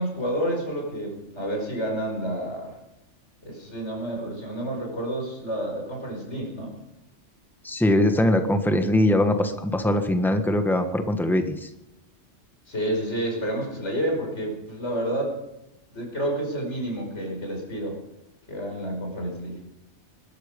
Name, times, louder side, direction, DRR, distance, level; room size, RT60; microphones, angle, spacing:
voice 1, 0.0-2.7 3.5-6.7 12.7-15.3 15.9-18.0 18.5-19.6, right 1 dB, 70° left, 0 dB, 5.8 m, -29 dB
voice 2, 7.6-11.7, left 1 dB, ahead, 7 dB, 1.3 m, -22 dB
21.0 x 12.5 x 5.3 m, 0.88 s
omnidirectional pair, 1.2 m